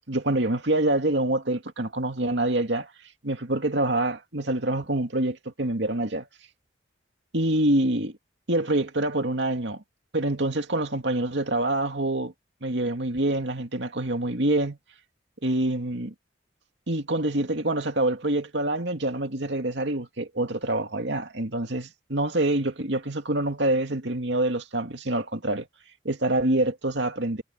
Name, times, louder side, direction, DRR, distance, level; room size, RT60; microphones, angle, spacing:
voice 1, 0.1-2.9 3.2-6.3 7.3-8.1 8.5-9.8 10.1-12.3 12.6-14.8 15.4-16.1 16.9-25.7 26.0-27.4, right 1 dB, 75° right, 2.3 m, -26 dB
head